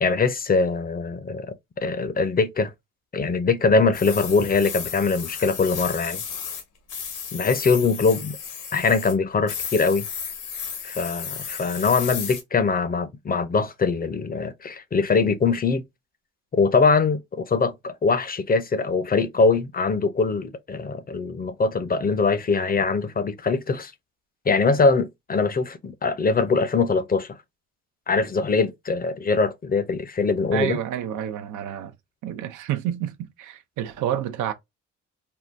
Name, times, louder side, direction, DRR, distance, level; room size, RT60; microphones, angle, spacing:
voice 1, 0.0-2.7 3.1-6.2 7.3-8.4 8.7-10.1 10.8-15.8 16.5-23.9 24.5-27.3 28.1-30.8, left 4 dB, 30° left, 0.5 m, -22 dB
sound 1, 3.9-6.6 6.9-9.1 9.5-12.4, left 7 dB, 90° left, 1.2 m, -34 dB
voice 2, 30.5-31.9 32.2-34.5, right 11 dB, 80° right, 0.6 m, -29 dB
3.6 x 2.2 x 2.5 m
cardioid pair, 90°, 30 cm